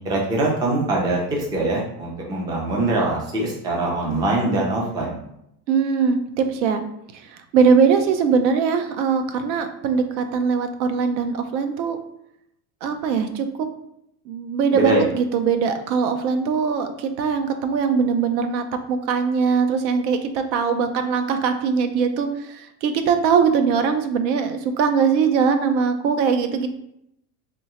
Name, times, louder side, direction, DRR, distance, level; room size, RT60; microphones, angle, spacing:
voice 1, 0.0-5.2 14.7-15.0, right 2 dB, 10° right, -2 dB, 0.3 m, -23 dB
voice 2, 5.7-6.8 7.1-7.2 7.5-12.0 12.8-13.7 14.3-26.7, right 6 dB, 80° right, 8 dB, 0.7 m, -21 dB
3.6 x 3.1 x 2.9 m, 0.78 s
supercardioid pair, 140°, 50 cm